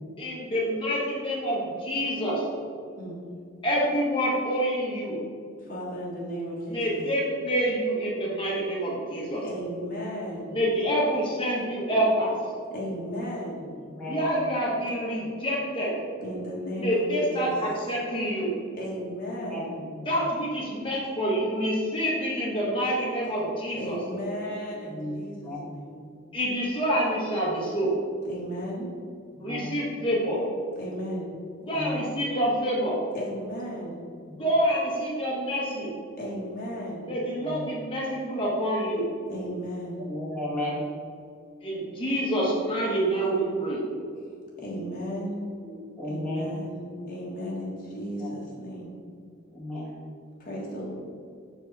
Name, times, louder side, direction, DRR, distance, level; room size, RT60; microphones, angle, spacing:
voice 1, 0.2-2.5 3.6-5.2 6.7-9.4 10.5-12.3 14.0-16.0 16.8-18.5 20.1-24.0 26.3-27.9 29.4-30.4 31.7-33.0 34.3-35.9 37.1-39.1 41.6-43.8, equal, 25° left, -5 dB, 1.2 m, -27 dB
voice 2, 5.6-7.0 9.4-10.6 12.7-13.7 16.2-17.5 18.7-19.8 23.7-26.2 28.2-28.9 30.8-31.3 33.1-34.0 36.1-37.2 39.3-40.1 44.2-45.5 46.0-48.9 50.4-50.9, equal, 40° left, -5 dB, 1.4 m, -35 dB
voice 3, 13.6-14.3 19.5-20.1 24.8-25.7 29.3-29.7 31.7-32.0 34.2-34.3 37.4-37.6 40.0-40.8 45.6-46.5 48.2-48.3 49.5-50.0, left 1 dB, 5° left, -8 dB, 1.5 m, -34 dB
5.4 x 4.8 x 4.0 m, 2.3 s
head